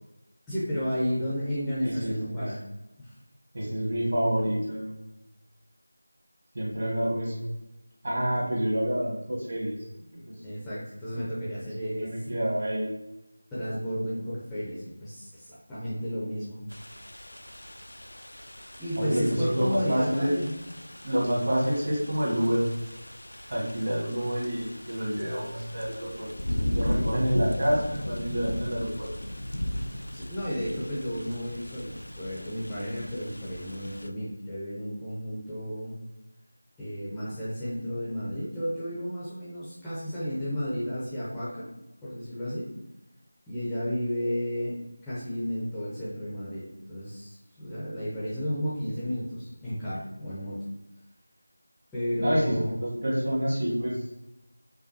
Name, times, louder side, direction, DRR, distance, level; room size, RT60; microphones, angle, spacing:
voice 1, 0.5-2.6 3.0-3.2 10.4-12.1 13.5-16.6 18.8-20.5 30.1-35.9 36.8-41.7 42.0-42.7 43.5-44.8 45.0-46.6 46.9-50.6 51.9-52.8, equal, 5° left, -11 dB, 0.5 m, -32 dB
voice 2, 1.8-2.5 3.5-5.1 6.5-7.5 8.0-9.8 10.3-10.4 11.8-12.9 19.0-20.3 21.0-22.7 23.5-26.3 26.7-29.1 52.2-54.0, equal, 45° right, -4 dB, 1.3 m, -28 dB
sound 1, 16.7-34.1, left 1 dB, 80° left, 0.3 m, -37 dB
4.9 x 2.2 x 2.6 m, 0.94 s
figure-of-eight pair, 170°, 0 cm